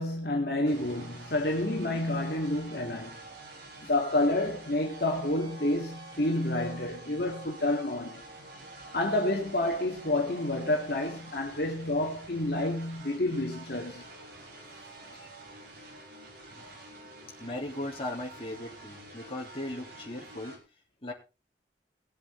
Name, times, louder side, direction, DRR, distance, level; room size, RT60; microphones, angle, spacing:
voice 1, 0.0-3.2 3.9-8.2 8.9-14.0, left 1 dB, 60° left, 2.3 m, -29 dB
sound 1, 0.6-20.6, right 2 dB, 75° right, 4.7 m, -48 dB
voice 2, 17.4-20.6 21.0-21.1, left 1 dB, 30° left, 3.5 m, -38 dB
20.0 x 8.0 x 3.9 m
head